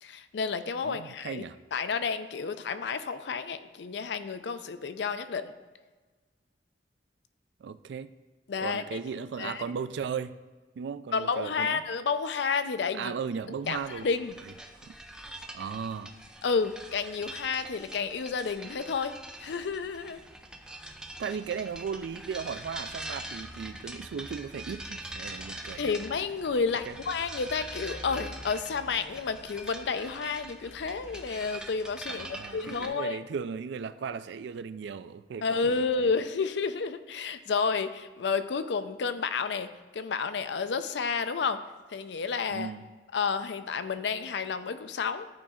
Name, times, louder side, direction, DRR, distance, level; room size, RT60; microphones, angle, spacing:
voice 1, 0.0-1.4 1.7-5.5 8.5-9.0 9.4-9.6 11.1-13.2 13.7-14.4 16.4-20.2 25.8-33.2 35.4-41.6 41.9-42.7 43.1-45.4, left 5 dB, 70° left, 11 dB, 0.5 m, -31 dB
voice 2, 0.8-1.6 7.6-8.1 8.6-10.3 10.8-11.8 12.9-14.1 14.8-15.0 15.5-16.1 21.2-25.9 26.9-27.0 32.1-36.1 42.5-42.8, right 6 dB, 75° right, 13 dB, 0.3 m, -36 dB
sound 1, 13.6-32.9, right 1 dB, 5° right, 0.5 m, -43 dB
11.5 x 4.1 x 3.7 m, 1.3 s
head